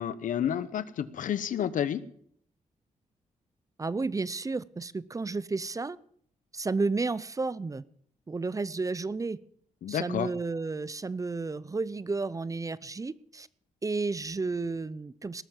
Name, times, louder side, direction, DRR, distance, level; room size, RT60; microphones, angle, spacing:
voice 1, 0.0-2.0 9.8-10.3, left 9 dB, 75° left, 16 dB, 0.9 m, -30 dB
voice 2, 3.8-6.0 6.5-7.8 8.3-9.4 9.9-13.5 13.8-15.4, right 3 dB, 25° right, 19 dB, 0.6 m, -32 dB
19.0 x 7.1 x 7.5 m, 0.63 s
cardioid pair, 80°, 14 cm